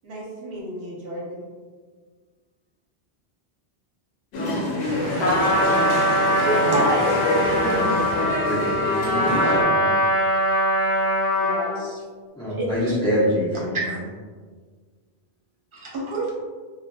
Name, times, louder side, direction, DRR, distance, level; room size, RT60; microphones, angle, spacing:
voice 1, 0.0-1.4 15.9-16.3, right 2 dB, 70° right, -4 dB, 0.8 m, -32 dB
sound 1, 4.3-9.6, left 1 dB, 80° left, 0.8 m, -26 dB
voice 2, 4.8-8.5 11.4-12.0 12.6-12.9 13.7-14.0 15.7-15.9, right 1 dB, 35° right, -5 dB, 0.6 m, -28 dB
Trumpet, 5.2-11.8, equal, 50° left, 0.5 m, -22 dB
voice 3, 8.4-9.9 12.3-13.8, equal, 5° left, -9 dB, 0.5 m, -26 dB
2.7 x 2.2 x 2.2 m, 1.5 s
omnidirectional pair, 1.1 m